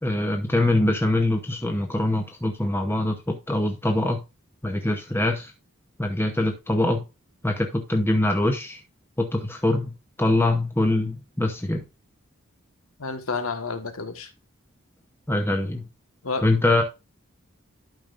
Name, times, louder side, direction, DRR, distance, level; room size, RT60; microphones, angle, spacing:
voice 1, 0.0-4.2 4.6-5.5 6.0-7.0 7.4-8.8 9.2-11.8 15.3-15.8 16.4-16.8, left 1 dB, 10° left, 0.8 m, -23 dB
voice 2, 13.0-14.3 16.2-16.5, left 4 dB, 80° left, 1.4 m, -30 dB
12.0 x 5.2 x 2.5 m
head